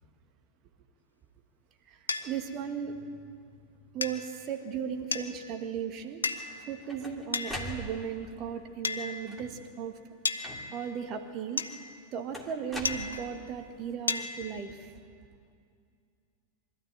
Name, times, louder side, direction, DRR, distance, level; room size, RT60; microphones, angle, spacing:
sound 1, 2.1-2.3 4.0-4.4 5.1-5.6 6.2-6.7 7.3-7.9 8.8-9.5 10.2-11.0 11.6-12.1 12.8-13.5 14.1-14.6, left 4 dB, 75° left, 0.8 m, -34 dB
voice 1, 2.2-3.1 3.9-6.2 6.7-9.9 10.7-11.7 12.1-14.9, right 7 dB, 35° right, 5 dB, 1.8 m, -36 dB
sound 2, 6.5-8.3 9.2-9.7 10.4-11.0 12.3-13.6, equal, ahead, 2.5 m, -42 dB
23.0 x 13.5 x 9.1 m, 2.4 s
figure-of-eight pair, 90°, 0 cm